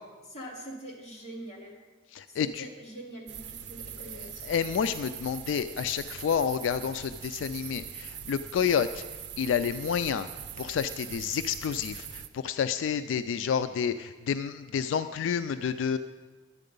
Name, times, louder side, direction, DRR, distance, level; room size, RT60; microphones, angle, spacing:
voice 1, 0.2-1.8 2.3-4.5, right 1 dB, 35° left, -3 dB, 2.2 m, -44 dB
voice 2, 2.1-2.7 4.4-9.0 9.4-10.3 10.6-16.0, left 7 dB, 85° left, 11 dB, 0.3 m, -29 dB
sound 1, 3.3-12.3, right 8 dB, 65° right, 0.6 m, -42 dB
11.0 x 8.5 x 5.2 m, 1.3 s
head